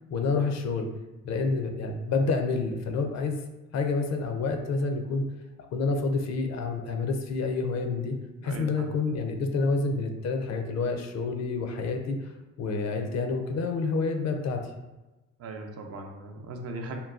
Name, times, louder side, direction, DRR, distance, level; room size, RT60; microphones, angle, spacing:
voice 1, 0.1-0.9 1.2-3.4 3.7-5.3 5.7-8.2 8.4-14.7, left 4 dB, 60° left, 5 dB, 0.5 m, -28 dB
voice 2, 8.4-9.0 15.4-17.0, right 2 dB, 55° right, 3 dB, 0.5 m, -38 dB
3.8 x 2.2 x 2.4 m, 1.1 s
cardioid pair, 90°, 30 cm